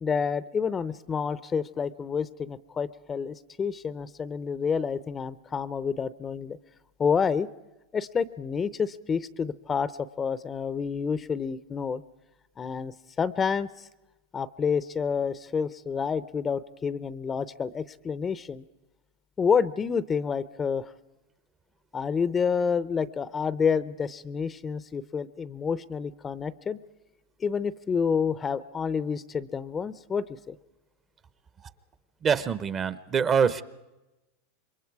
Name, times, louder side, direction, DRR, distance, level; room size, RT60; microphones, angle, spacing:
voice 1, 0.0-6.6 7.0-7.5 7.9-9.9 10.2-12.0 12.6-13.9 14.3-18.6 19.4-20.9 21.9-26.8 27.4-30.6, left 6 dB, 25° left, 17 dB, 0.6 m, -29 dB
voice 2, 32.2-33.6, right 6 dB, 30° right, 15 dB, 0.8 m, -24 dB
27.0 x 22.5 x 4.7 m, 1.0 s
hypercardioid pair, 115°, 0 cm